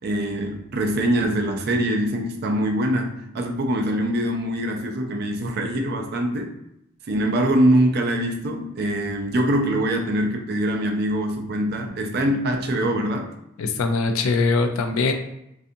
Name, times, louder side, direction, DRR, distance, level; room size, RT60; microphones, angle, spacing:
voice 1, 0.0-6.5 7.1-13.3, right 1 dB, 50° right, 3 dB, 0.4 m, -23 dB
voice 2, 13.6-15.1, left 3 dB, 85° left, 6 dB, 0.4 m, -22 dB
2.6 x 2.3 x 2.5 m, 0.81 s
head